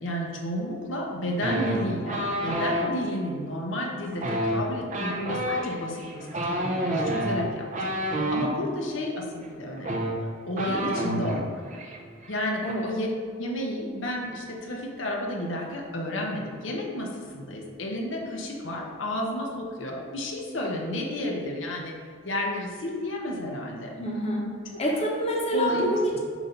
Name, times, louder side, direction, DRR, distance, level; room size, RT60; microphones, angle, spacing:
voice 1, 0.0-10.1 10.5-11.6 12.3-13.1 13.4-23.9 24.7-24.8 25.5-25.9, left 1 dB, 75° left, -1 dB, 0.9 m, -32 dB
sound 1, 1.4-2.9 4.1-8.5 9.4-9.5 9.8-11.4 11.7-12.0 12.2-12.7, equal, 40° right, 0.7 m, -28 dB
voice 2, 24.0-24.4 24.8-26.2, equal, 30° left, -2 dB, 1.0 m, -26 dB
6.9 x 2.7 x 5.8 m, 2.1 s
head